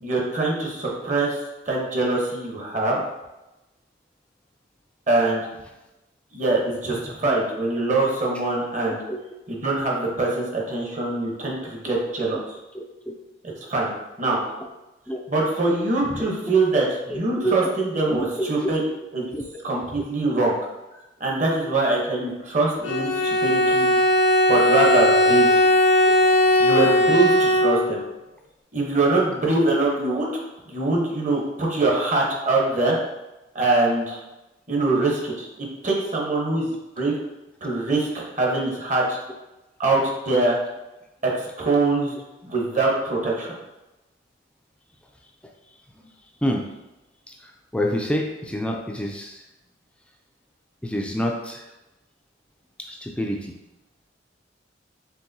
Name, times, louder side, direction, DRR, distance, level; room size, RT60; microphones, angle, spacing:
voice 1, 0.0-1.4 1.6-3.0 5.1-5.4 6.3-9.0 9.5-12.4 13.7-13.9 14.2-14.4 15.3-18.8 19.1-19.2 19.6-20.6 21.2-23.9 24.5-25.6 26.6-28.0 28.7-30.3 30.7-33.0 33.5-34.2 34.7-36.7 37.0-37.1 37.6-38.0 38.4-39.2 39.8-40.6 41.2-41.3 41.6-42.1 42.4-43.5, right 2 dB, 40° right, -2 dB, 0.9 m, -23 dB
voice 2, 6.9-7.3 9.1-9.2 12.7-12.8 14.6-14.7 15.1-15.2 16.1-16.3 17.1-17.7 18.1-18.5 19.3-19.6 23.1-23.2 23.9-24.1 26.2-26.3 27.0-27.2 37.9-38.0 46.4-46.7 47.3-49.5 50.8-51.7 52.8-53.6, equal, 5° left, 1 dB, 0.3 m, -28 dB
Bowed string instrument, 22.8-28.1, left 1 dB, 80° left, 0.6 m, -18 dB
4.6 x 3.5 x 2.7 m, 1.0 s
head